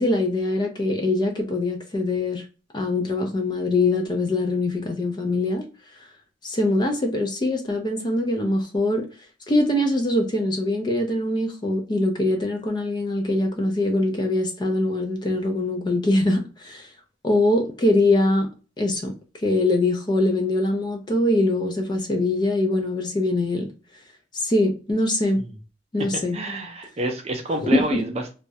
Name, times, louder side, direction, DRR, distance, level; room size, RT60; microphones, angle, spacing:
voice 1, 0.0-2.4 2.7-5.7 6.0-6.1 6.4-9.1 9.5-16.9 17.2-18.5 18.8-23.7 24.3-25.4 25.9-26.4 27.6-28.0, left 2 dB, 25° left, 0.4 m, -23 dB
voice 2, 26.3-28.3, right 2 dB, 35° right, 0.5 m, -28 dB
2.3 x 2.0 x 2.7 m
head